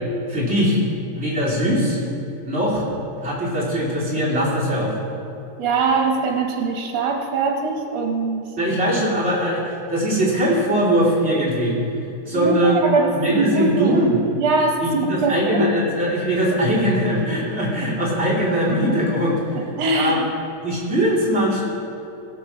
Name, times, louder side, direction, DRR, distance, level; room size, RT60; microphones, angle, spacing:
voice 1, 0.3-0.8 1.1-2.0 2.5-2.8 3.2-5.0 8.6-11.8 12.2-12.8 13.1-14.2 14.8-19.6 19.9-20.2 20.6-21.6, equal, 30° right, -7 dB, 3.3 m, -21 dB
voice 2, 5.6-8.4 12.3-14.0 14.4-15.7 19.8-20.3, right 3 dB, 80° right, 1 dB, 1.9 m, -22 dB
16.5 x 6.5 x 5.9 m, 2.9 s
omnidirectional pair, 2.3 m